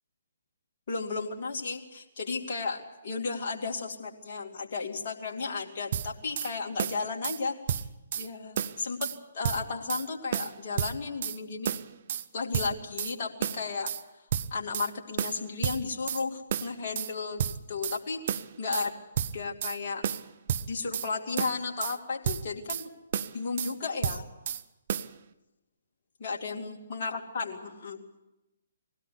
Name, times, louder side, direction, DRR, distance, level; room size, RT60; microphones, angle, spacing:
voice 1, 0.9-7.9 8.2-11.8 12.3-13.9 14.5-19.0 19.3-20.0 20.6-22.9 23.3-24.2 26.2-28.0, left 4 dB, 45° left, 0 dB, 2.6 m, -34 dB
sound 1, 5.9-6.5 6.8-7.4 7.7-8.3 8.6-9.2 9.4-10.1 10.3-11.4 11.7-12.3 12.5-13.1 13.4-14.0 14.3-14.9 15.2-16.2 16.5-17.1 17.4-18.0 18.3-18.9 19.2-19.8 20.0-21.1 21.4-22.0 22.3-22.9 23.1-23.7 24.0-24.6 24.9-25.1, right 9 dB, 45° right, 0.7 m, -31 dB
21.0 x 17.0 x 8.4 m, 0.99 s
figure-of-eight pair, 135°, 0 cm